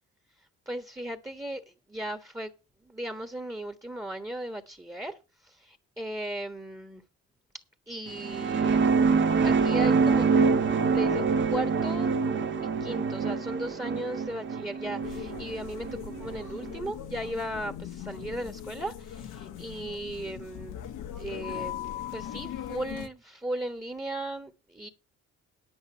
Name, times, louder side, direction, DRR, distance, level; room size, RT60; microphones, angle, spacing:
voice 1, 0.7-1.6 1.9-2.5 2.8-5.2 5.4-7.0 7.9-8.8 9.1-10.3 10.9-12.1 12.8-20.8 21.2-21.8 22.1-24.9, right 1 dB, 10° right, 1.3 m, -36 dB
sound 1, 8.1-16.7, right 5 dB, 40° right, 1.1 m, -25 dB
sound 2, 15.0-23.1, left 10 dB, 85° left, 1.4 m, -40 dB
9.6 x 8.9 x 5.5 m
cardioid pair, 90°, 30 cm